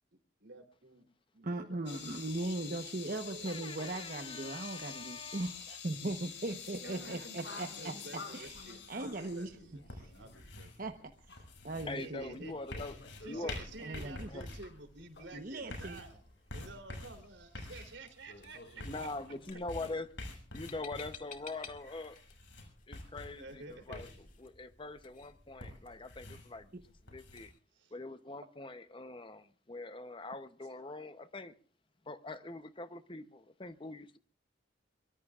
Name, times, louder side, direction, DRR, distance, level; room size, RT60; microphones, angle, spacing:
voice 1, 0.4-1.1 1.3-2.8 3.2-3.7 6.8-10.9 12.0-12.5 13.2-16.2 16.5-19.3 19.8-19.9 23.4-24.0 25.7-25.8 27.7-27.9, right 2 dB, 75° right, 3.5 m, -51 dB
voice 2, 1.4-7.9 8.3-9.5 9.9-10.1 10.8-10.9 11.3-11.4 11.6-12.5 13.8-14.3 15.3-16.0, right 2 dB, 50° right, 1.1 m, -39 dB
sound 1, 1.9-10.4 10.7-10.8 11.3-12.1 12.3-14.7 15.2-15.3 17.8-17.9 18.3-19.5, left 6 dB, 65° left, 5.2 m, -48 dB
voice 3, 3.4-5.5 11.9-13.0 13.3-13.6 14.3-14.5 18.8-20.1 20.5-22.2 22.9-23.6 23.9-24.1 24.4-26.7 27.1-27.5 27.9-31.5 32.0-34.2, left 2 dB, 25° left, 0.8 m, -43 dB
sound 2, 8.4-27.5, left 1 dB, 85° left, 7.3 m, -49 dB
sound 3, 10.9-27.6, left 6 dB, 45° left, 2.2 m, -60 dB
24.0 x 23.5 x 2.5 m
head